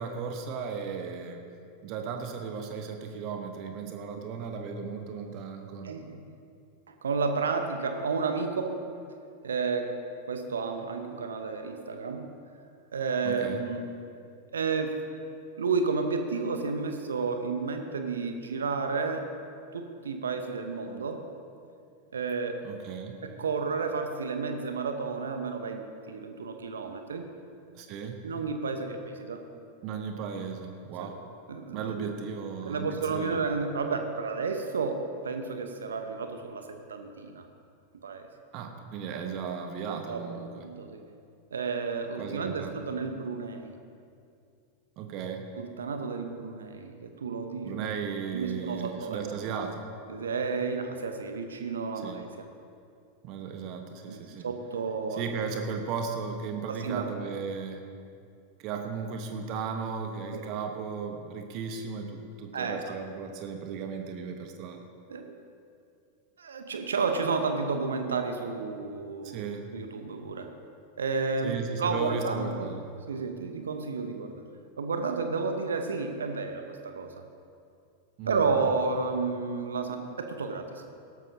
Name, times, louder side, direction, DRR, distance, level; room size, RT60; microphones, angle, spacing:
voice 1, 0.0-1.5 1.8-5.9 13.2-13.6 22.6-23.2 27.7-28.2 29.8-31.2 31.7-33.4 38.5-40.6 42.2-42.7 45.0-45.5 47.6-49.9 52.0-52.2 53.2-54.5 55.1-57.8 58.6-64.8 69.2-69.7 71.4-72.8 78.2-78.6, right 6 dB, 40° right, 5 dB, 1.1 m, -36 dB
voice 2, 5.8-6.3 6.9-8.8 9.4-10.0 10.2-12.3 12.9-13.8 14.5-15.0 15.6-19.3 19.7-21.3 22.1-22.6 23.2-27.3 28.2-29.4 31.0-31.1 31.5-32.0 32.7-37.5 38.0-38.3 39.9-41.0 41.5-43.7 45.6-47.9 48.3-49.2 50.1-52.5 54.1-54.2 54.4-55.3 56.7-57.2 60.3-60.4 62.5-63.0 65.1-65.4 66.4-69.4 69.7-70.5 71.0-72.7 73.1-74.4 74.8-77.2 78.3-80.9, right 4 dB, 70° right, 6 dB, 0.9 m, -31 dB
17.5 x 13.0 x 2.8 m, 2.4 s
figure-of-eight pair, 90°, 0 cm